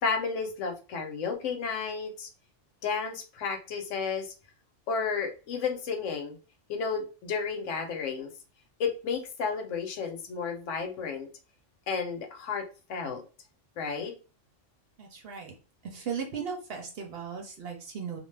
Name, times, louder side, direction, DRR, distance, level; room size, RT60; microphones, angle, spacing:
voice 1, 0.0-2.3 2.8-4.3 4.9-6.4 6.7-8.3 8.8-11.3 11.9-13.2 13.8-14.1, left 5 dB, 75° left, 4 dB, 1.0 m, -32 dB
voice 2, 15.0-15.5 15.8-18.2, right 6 dB, 60° right, 2 dB, 0.8 m, -37 dB
2.4 x 2.1 x 3.2 m, 0.35 s
omnidirectional pair, 1.3 m